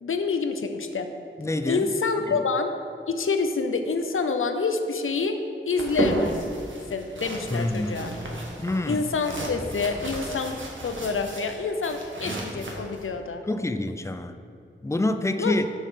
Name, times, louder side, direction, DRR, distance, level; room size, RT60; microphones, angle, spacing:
voice 1, 0.0-1.1 1.7-2.7 3.1-5.4 5.7-6.3 6.9-8.1 8.9-10.6 10.8-13.4 15.4-15.6, left 4 dB, 75° left, 6 dB, 0.7 m, -27 dB
voice 2, 1.4-1.9 2.3-2.4 7.5-8.0 8.6-9.0 13.5-14.4 14.8-15.7, left 2 dB, 15° left, 9 dB, 0.4 m, -27 dB
sound 1, 5.8-13.0, right 2 dB, 65° right, 1.4 m, -33 dB
7.4 x 6.4 x 5.0 m, 2.4 s
wide cardioid pair, 75°, 21 cm